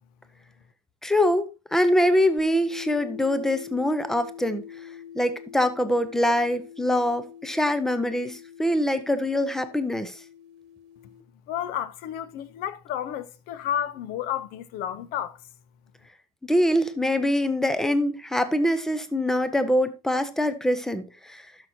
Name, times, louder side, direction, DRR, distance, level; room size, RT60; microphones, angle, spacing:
voice 1, 1.0-4.6 5.2-10.2 16.4-21.4, left 1 dB, ahead, 0.7 m, -24 dB
sound 1, 2.4-11.2, left 9 dB, 50° right, 1.2 m, -44 dB
voice 2, 11.5-15.4, left 10 dB, 50° left, 0.8 m, -31 dB
12.0 x 6.3 x 2.7 m
supercardioid pair, 150°, 20 cm